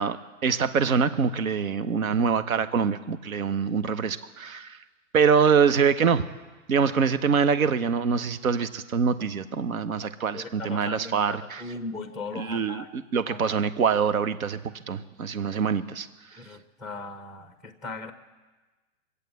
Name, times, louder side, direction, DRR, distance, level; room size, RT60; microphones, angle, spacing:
voice 1, 0.0-4.8 5.1-6.2 6.7-11.6 12.4-16.1, right 6 dB, 80° right, 13 dB, 1.0 m, -24 dB
voice 2, 10.3-12.9 13.3-13.6 16.3-18.1, left 3 dB, ahead, 6 dB, 0.9 m, -38 dB
22.0 x 8.3 x 8.1 m, 1.2 s
hypercardioid pair, 135°, 41 cm